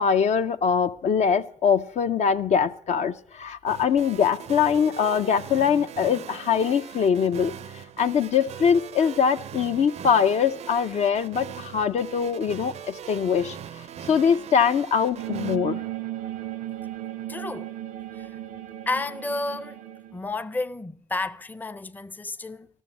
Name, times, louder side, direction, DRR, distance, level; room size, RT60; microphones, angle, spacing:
voice 1, 0.0-13.6 14.0-15.8, left 7 dB, 60° left, 0.5 m, -23 dB
sound 1, 3.7-15.6, right 9 dB, 55° right, 0.4 m, -40 dB
sound 2, 15.2-20.2, right 13 dB, 85° right, 0.8 m, -35 dB
voice 2, 17.3-17.7 18.1-18.3 18.9-19.8 20.1-22.7, left 3 dB, 15° left, 0.5 m, -31 dB
12.5 x 7.0 x 7.2 m
supercardioid pair, 55°, 14 cm